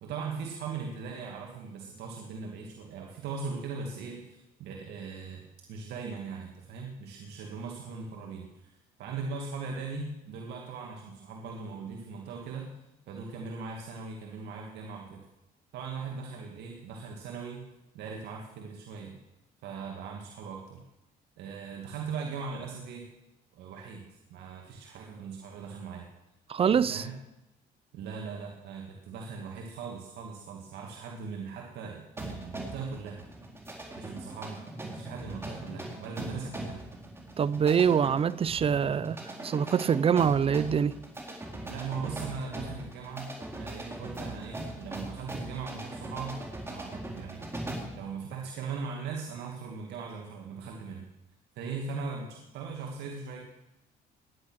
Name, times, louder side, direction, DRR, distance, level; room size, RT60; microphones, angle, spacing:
voice 1, 0.0-5.4 5.7-12.7 13.1-15.2 15.7-17.6 17.9-19.2 19.6-20.8 21.4-23.1 23.5-26.1 26.7-27.2 27.9-33.2 34.0-36.8 41.6-47.5 47.9-51.1 51.6-53.4, right 5 dB, 80° right, 2.2 m, -39 dB
voice 2, 26.5-27.0 37.4-41.0, right 7 dB, 35° right, 0.6 m, -25 dB
sound 1, 32.2-48.0, right 1 dB, 15° right, 3.8 m, -40 dB
18.5 x 11.0 x 6.3 m
cardioid pair, 110°, 17 cm